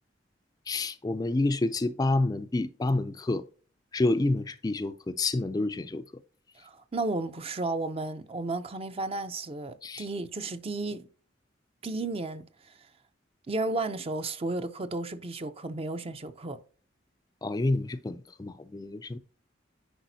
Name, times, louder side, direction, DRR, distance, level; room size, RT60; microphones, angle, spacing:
voice 1, 0.7-3.4 3.9-6.0 9.8-10.1 17.4-19.2, left 2 dB, 20° left, 0.3 m, -28 dB
voice 2, 6.6-11.1 11.8-12.7 13.5-16.6, right 2 dB, 30° right, 0.5 m, -33 dB
10.0 x 4.9 x 2.7 m
head